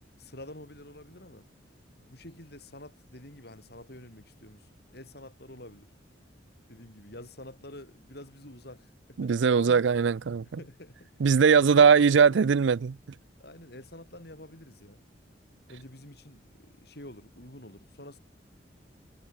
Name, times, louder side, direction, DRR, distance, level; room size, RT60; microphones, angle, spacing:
voice 1, 0.2-1.5 2.0-5.9 6.7-9.8 10.4-11.2 11.6-12.4 13.4-15.0 15.7-18.2, left 1 dB, 60° left, 6.2 m, -48 dB
voice 2, 9.2-10.6 11.2-13.0, right 6 dB, 85° right, 0.4 m, -20 dB
head